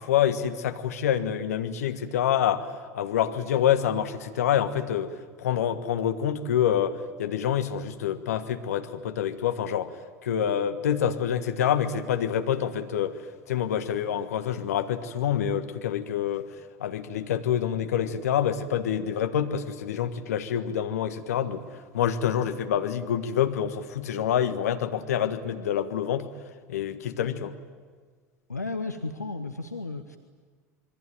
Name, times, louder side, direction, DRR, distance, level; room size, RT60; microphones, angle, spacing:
voice 1, 0.0-2.6 2.9-5.1 5.4-9.9 10.2-13.1 13.5-16.5 16.8-21.6 21.9-26.3 26.7-27.5, left 9 dB, 65° left, 8 dB, 1.5 m, -27 dB
voice 2, 28.5-30.2, left 3 dB, 85° left, 7 dB, 1.1 m, -33 dB
26.5 x 21.5 x 9.2 m, 1.5 s
figure-of-eight pair, 80°, 9 cm